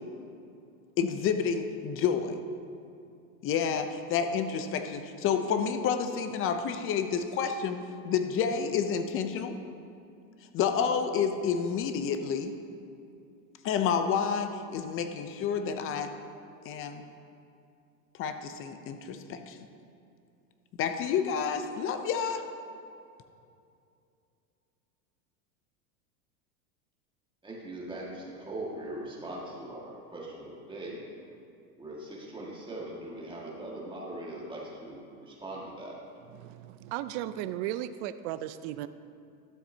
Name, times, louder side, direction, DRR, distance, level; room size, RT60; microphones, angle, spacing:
voice 1, 1.0-2.4 3.4-7.8 8.0-9.5 10.5-12.5 13.6-16.1 16.6-17.0 18.2-19.6 20.8-22.4, left 7 dB, 30° left, 8 dB, 0.5 m, -29 dB
voice 2, 27.4-31.0 31.8-36.0, right 1 dB, 10° right, -5 dB, 1.8 m, -40 dB
voice 3, 36.3-38.9, right 12 dB, 55° right, 13 dB, 0.5 m, -35 dB
12.5 x 7.1 x 2.8 m, 2.5 s
supercardioid pair, 120°, 45 cm